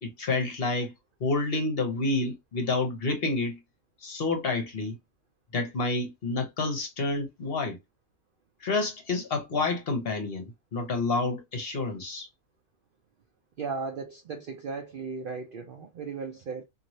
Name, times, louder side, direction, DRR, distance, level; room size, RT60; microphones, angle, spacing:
voice 1, 0.0-0.9 1.2-3.6 4.0-5.0 5.5-7.8 8.6-12.3, left 3 dB, 50° left, 0.9 m, -29 dB
voice 2, 13.6-16.6, right 4 dB, 80° right, 0.4 m, -36 dB
3.0 x 2.7 x 2.6 m
omnidirectional pair, 1.6 m